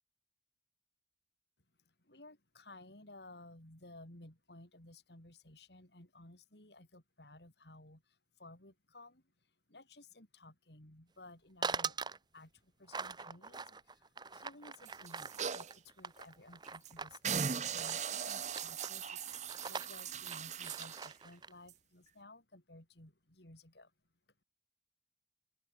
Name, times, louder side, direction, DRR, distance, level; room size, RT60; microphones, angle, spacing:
voice 1, 1.8-9.2 9.7-19.4 19.6-23.9, left 2 dB, 70° left, 5.3 m, -57 dB
sound 1, 11.6-12.2 12.9-17.2 17.8-18.2 18.4-18.9 19.3-21.5, right 4 dB, 25° right, 1.3 m, -42 dB
sound 2, 14.9-15.8 16.2-16.3 16.6-16.9 17.2-21.1 21.7-21.8, right 7 dB, 40° right, 1.0 m, -39 dB
open air
head